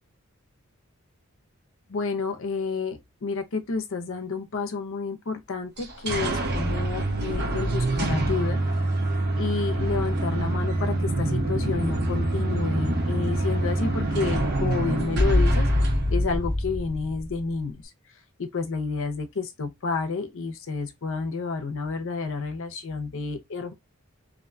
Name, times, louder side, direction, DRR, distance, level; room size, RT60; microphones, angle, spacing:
voice 1, 1.9-8.6 9.4-17.8 18.4-23.7, left 4 dB, 65° left, 0.6 m, -30 dB
sound 1, 5.8-17.4, right 1 dB, 50° right, 0.8 m, -25 dB
2.6 x 2.2 x 2.5 m
head